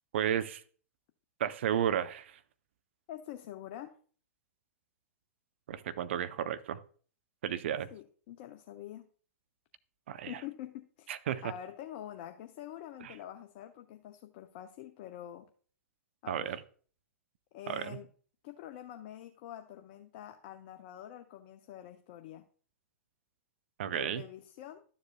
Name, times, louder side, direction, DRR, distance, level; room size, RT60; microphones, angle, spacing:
voice 1, 0.1-0.6 1.4-2.4 5.7-6.8 7.4-7.9 10.1-10.4 11.1-11.5 13.0-13.1 16.3-16.6 17.7-18.0 23.8-24.2, right 10 dB, 55° right, 12 dB, 0.6 m, -33 dB
voice 2, 3.1-3.9 7.9-9.1 10.3-15.5 16.2-16.6 17.5-18.1 18.4-22.4 23.8-24.8, left 11 dB, 40° left, 6 dB, 0.7 m, -46 dB
12.5 x 7.2 x 2.2 m, 0.44 s
figure-of-eight pair, 100°, 8 cm